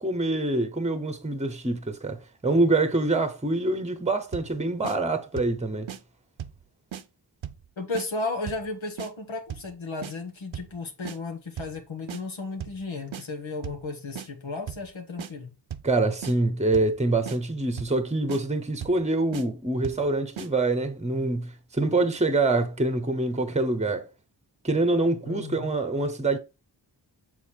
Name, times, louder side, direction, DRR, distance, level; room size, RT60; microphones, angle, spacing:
voice 1, 0.0-5.9 15.8-24.1 24.6-26.4, right 2 dB, 15° right, 0.9 m, -25 dB
sound 1, 4.3-4.6 4.8-5.0 5.4-5.6 5.9-6.0 6.4-6.6 6.9-7.0 7.4-7.7 7.9-8.1 8.5-8.7 9.0-9.1 9.5-9.7 10.0-10.1 10.5-10.8 11.1-11.2 11.6-11.8 12.1-12.2 12.6-12.8 13.1-13.2 13.6-13.9 14.2-14.3 14.7-14.9 15.2-15.3 15.7-15.9 16.2-16.4 16.7-17.0 17.3-17.4 17.8-18.0 18.3-18.4 18.8-19.0 19.3-19.5 19.8-20.1 20.4-20.5, right 9 dB, 85° right, 0.7 m, -37 dB
voice 2, 7.8-15.5 25.2-25.7, left 3 dB, 90° left, 1.6 m, -34 dB
6.9 x 4.1 x 4.5 m
wide cardioid pair, 90°, 45 cm